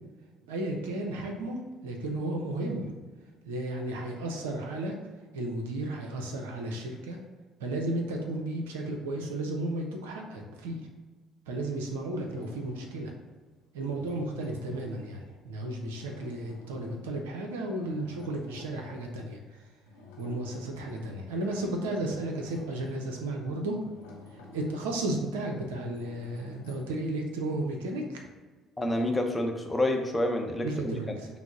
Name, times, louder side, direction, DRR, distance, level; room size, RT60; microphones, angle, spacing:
voice 1, 0.5-2.9 3.5-5.0 5.3-7.2 7.6-10.9 11.5-13.1 13.7-19.4 20.2-23.8 24.5-28.2 30.6-31.3, right 1 dB, 75° right, 2 dB, 0.6 m, -33 dB
sound 1, 12.2-13.3 13.8-15.4 15.9-17.1 17.9-19.1 19.8-21.2 21.6-27.4, left 3 dB, 75° left, 0.8 m, -50 dB
voice 2, 28.8-31.2, left 1 dB, 15° left, 3 dB, 0.7 m, -28 dB
5.8 x 2.0 x 3.8 m, 1.3 s
figure-of-eight pair, 55°, 0 cm